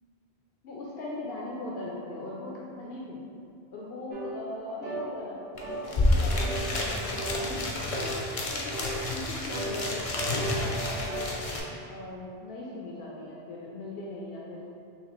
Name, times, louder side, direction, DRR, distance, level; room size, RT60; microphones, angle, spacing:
voice 1, 0.6-3.2 3.7-7.7 8.3-8.9 9.1-11.4 11.9-14.7, left 2 dB, 70° left, -4 dB, 0.8 m, -39 dB
sound 1, 4.1-4.3 4.8-5.1 5.6-5.8 6.4-6.6 7.2-7.4 7.9-8.2 8.7-9.0 9.5-11.3, right 2 dB, 75° right, 1.0 m, -36 dB
sound 2, 5.6-5.7 5.8-11.6, left 2 dB, 45° left, 0.5 m, -29 dB
5.7 x 2.4 x 3.0 m, 2.5 s
omnidirectional pair, 1.1 m